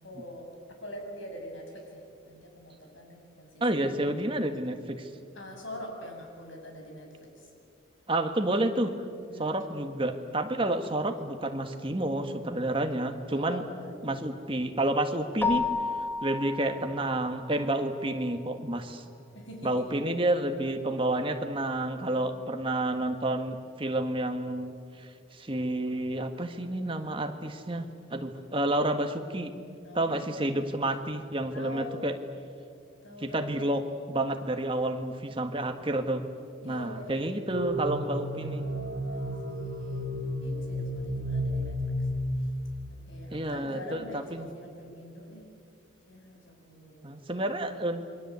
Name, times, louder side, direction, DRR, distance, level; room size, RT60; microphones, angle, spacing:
voice 1, 0.0-3.8 5.3-7.5 9.3-9.6 13.3-14.3 19.3-19.9 29.8-30.5 31.5-32.0 33.0-33.8 36.6-37.3 39.1-40.1 40.4-42.1 42.4-42.5 42.9-45.5 46.1-47.1, left 1 dB, 75° left, 2 dB, 6.6 m, -45 dB
voice 2, 3.6-5.1 8.1-8.9 9.4-13.6 14.0-15.6 16.2-19.0 19.6-29.5 29.9-32.2 33.2-36.2 36.6-38.6 43.3-44.5 47.0-48.0, right 1 dB, 25° right, 6 dB, 1.7 m, -30 dB
Keyboard (musical), 15.4-17.9, left 4 dB, 10° left, 1.5 m, -32 dB
sound 1, 37.5-42.9, equal, 55° right, 2.5 m, -32 dB
29.0 x 23.0 x 8.3 m, 2.4 s
head